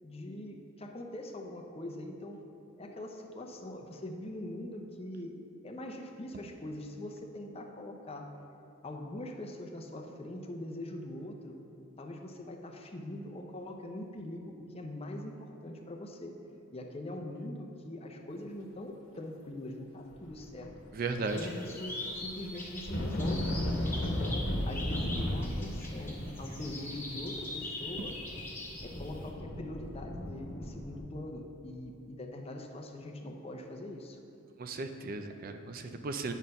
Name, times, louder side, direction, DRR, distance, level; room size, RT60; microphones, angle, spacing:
voice 1, 0.0-2.5 2.8-5.4 5.6-8.3 8.8-11.6 12.0-16.4 16.7-20.7 21.2-23.6 24.0-28.2 28.8-34.2, left 1 dB, 30° left, 3 dB, 0.6 m, -42 dB
sound 1, 20.2-21.2 21.5-31.0, left 1 dB, 80° left, 1.1 m, -36 dB
voice 2, 20.9-21.4 34.6-36.3, right 3 dB, 45° right, 7 dB, 0.4 m, -36 dB
sound 2, 21.2-29.3, left 2 dB, 10° left, 1.3 m, -43 dB
9.0 x 4.4 x 5.3 m, 2.9 s
head